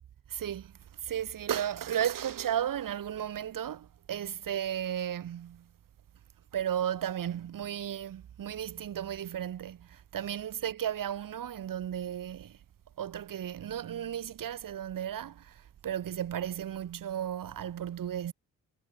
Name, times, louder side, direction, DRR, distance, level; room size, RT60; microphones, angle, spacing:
voice 1, 0.3-0.7 1.0-5.7 6.5-12.6 13.0-18.3, right 10 dB, 70° right, 3.3 m, -34 dB
supercardioid pair, 55°, 34 cm